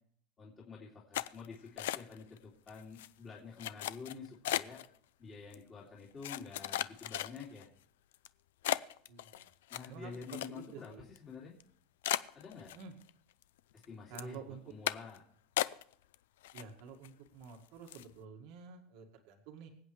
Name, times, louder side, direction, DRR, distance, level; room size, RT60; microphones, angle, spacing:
voice 1, 0.4-4.8 5.2-7.7 9.7-11.6 12.3-12.7 13.8-15.2, left 5 dB, 25° left, -4 dB, 2.5 m, -49 dB
sound 1, 1.1-2.4 2.7-3.1 3.6-4.9 5.5-5.6 6.2-7.6 8.1-8.3 8.6-10.9 11.2-11.3 11.6-11.7 12.0-13.1 13.4-13.9 14.2-14.4 14.9-15.2 15.6-16.2 16.4-17.1 17.4-17.6 17.9-18.1, left 14 dB, 90° left, 0.5 m, -36 dB
voice 2, 9.1-9.5 9.9-11.0 12.7-12.9 14.1-14.6 16.5-19.7, right 6 dB, 60° right, 3 dB, 1.9 m, -50 dB
25.5 x 8.4 x 3.2 m, 0.63 s
supercardioid pair, 155°, 0 cm